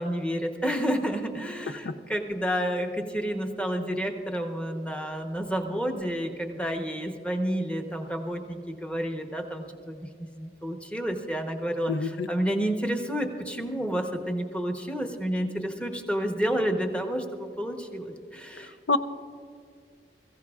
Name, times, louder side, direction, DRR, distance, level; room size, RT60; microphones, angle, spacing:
voice 1, 0.0-10.1 10.4-18.7, equal, 5° left, 4 dB, 0.9 m, -30 dB
voice 2, 11.9-12.3 18.9-19.0, left 3 dB, 80° left, 11 dB, 0.6 m, -26 dB
22.0 x 15.0 x 2.4 m, 2.2 s
head